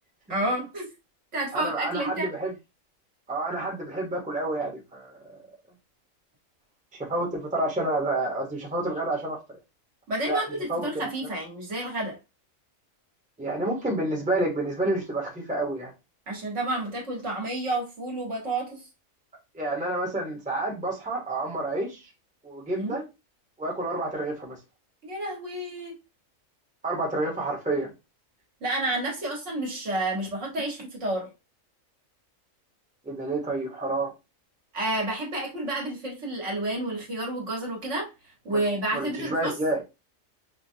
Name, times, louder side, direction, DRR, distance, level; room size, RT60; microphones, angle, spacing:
voice 1, 0.3-0.9 1.3-2.3 10.1-12.2 16.3-18.8 22.7-23.0 25.0-26.0 28.6-31.3 34.7-39.5, right 1 dB, 65° right, 1.8 m, -30 dB
voice 2, 1.5-2.5 3.3-5.2 7.0-9.4 10.3-10.4 10.7-11.1 13.4-15.9 19.5-22.0 22.4-23.0 23.6-24.6 26.8-27.9 33.0-34.1 38.5-38.6 38.9-39.8, right 2 dB, 5° right, 1.0 m, -29 dB
5.1 x 2.4 x 2.7 m
omnidirectional pair, 1.4 m